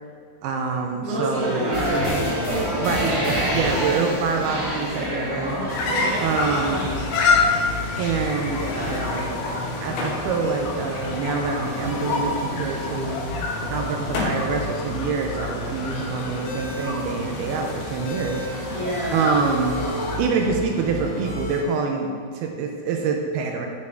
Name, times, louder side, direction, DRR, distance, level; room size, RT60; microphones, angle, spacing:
voice 1, 0.4-1.8 2.8-5.9 6.2-6.9 8.0-18.8 19.1-19.8 20.2-23.7, right 4 dB, 80° right, 2 dB, 2.5 m, -26 dB
voice 2, 1.0-2.2 2.5-2.8 3.7-3.8 5.9-6.2 6.5-6.7 18.7-19.4, right 1 dB, 65° right, -10 dB, 3.2 m, -28 dB
sound 1, 1.3-7.0, equal, 45° right, 0.4 m, -28 dB
sound 2, 1.7-21.6, left 1 dB, 50° left, 1.7 m, -33 dB
sound 3, 5.7-20.2, left 3 dB, 75° left, 2.6 m, -28 dB
8.3 x 6.8 x 3.5 m, 2.2 s
omnidirectional pair, 4.7 m